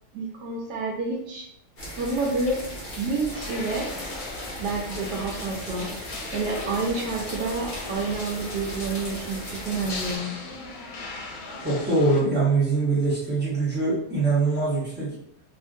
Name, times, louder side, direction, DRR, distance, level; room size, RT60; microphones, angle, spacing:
voice 1, 0.1-1.4 2.0-2.6 3.0-3.9 4.6-5.9 6.3-10.4, right 3 dB, 75° right, -1 dB, 1.1 m, -29 dB
sound 1, 1.8-10.2, equal, 40° left, 0.5 m, -37 dB
sound 2, 3.3-12.2, left 3 dB, 65° left, 1.0 m, -38 dB
voice 2, 11.6-15.1, right 3 dB, 10° right, -9 dB, 0.5 m, -23 dB
2.7 x 2.5 x 2.6 m, 0.74 s
omnidirectional pair, 1.9 m